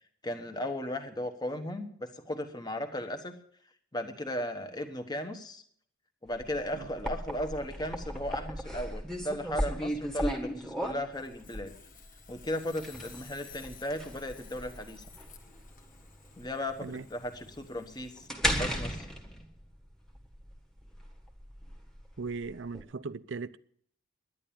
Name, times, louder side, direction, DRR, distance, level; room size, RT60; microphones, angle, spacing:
voice 1, 0.2-3.3 3.9-5.6 6.2-11.7 12.3-15.0 16.4-19.1, left 1 dB, 20° left, 1.2 m, -36 dB
sound 1, 6.3-22.8, equal, ahead, 1.4 m, -36 dB
Sawing, 11.1-18.3, left 7 dB, 40° left, 1.4 m, -55 dB
voice 2, 22.2-23.6, right 4 dB, 60° right, 0.6 m, -38 dB
11.0 x 10.0 x 8.7 m
head